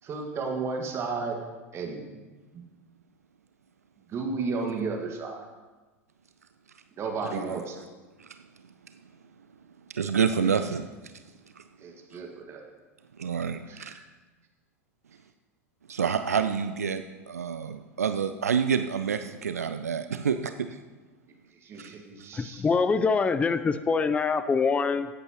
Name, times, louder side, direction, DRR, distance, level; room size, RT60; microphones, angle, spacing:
voice 1, 0.0-1.4 1.7-2.2 4.1-5.4 7.0-7.8 11.8-12.6 13.7-14.0 21.6-22.6, right 4 dB, 35° right, 1 dB, 1.8 m, -33 dB
voice 2, 9.9-10.9 11.6-11.7 13.2-13.9 15.9-20.8, right 6 dB, 80° right, 9 dB, 0.4 m, -28 dB
voice 3, 22.3-25.1, left 5 dB, 15° left, 12 dB, 0.4 m, -24 dB
15.5 x 8.0 x 3.0 m, 1.2 s
figure-of-eight pair, 85°, 8 cm